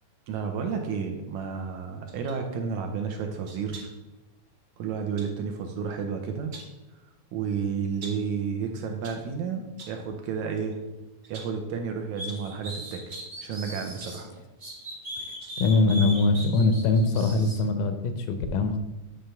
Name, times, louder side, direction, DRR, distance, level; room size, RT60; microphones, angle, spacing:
voice 1, 0.3-3.9 4.8-6.5 7.3-10.8 11.3-14.3, right 6 dB, 80° right, 4 dB, 1.9 m, -31 dB
sound 1, 2.1-2.4 3.4-4.1 5.2-5.4 6.3-6.8 8.0-8.3 8.8-9.3 9.8-10.1 10.6-10.7 11.2-11.7 12.3-12.5 13.1-13.4 13.9-14.3 15.0-16.1 16.4-16.7 17.0-17.1, right 3 dB, 45° right, 1.3 m, -47 dB
sound 2, 12.2-14.2 14.6-17.6, equal, 60° right, 0.4 m, -38 dB
voice 2, 15.6-18.8, left 3 dB, 80° left, 8 dB, 2.0 m, -22 dB
8.9 x 3.3 x 5.6 m, 1.0 s
omnidirectional pair, 3.8 m